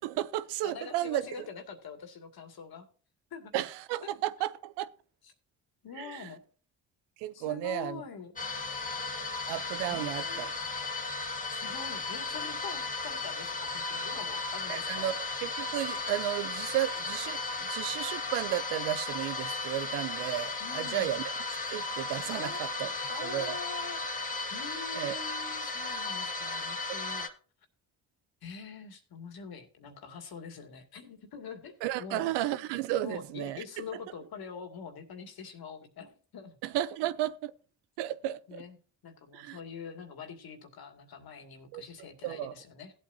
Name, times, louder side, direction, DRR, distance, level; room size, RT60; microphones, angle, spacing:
voice 1, 0.0-1.2 3.5-4.9 6.0-6.3 7.2-8.0 9.5-10.5 14.7-21.2 21.7-22.9 23.2-23.6 24.9-25.2 31.8-33.6 36.6-37.5 38.0-38.6 39.3-39.6 41.7-41.8 42.2-42.5, right 13 dB, 85° right, 0.7 m, -33 dB
voice 2, 0.6-2.9 3.3-3.6 4.0-4.1 5.8-6.4 7.3-8.5 9.9-10.5 11.5-15.1 20.6-21.2 22.3-27.3 28.4-32.6 33.0-36.6 38.5-38.8 39.0-42.9, left 6 dB, 65° left, 2.4 m, -45 dB
sound 1, 8.4-27.3, left 3 dB, 20° left, 1.9 m, -35 dB
16.5 x 8.5 x 2.7 m
supercardioid pair, 55°, 40 cm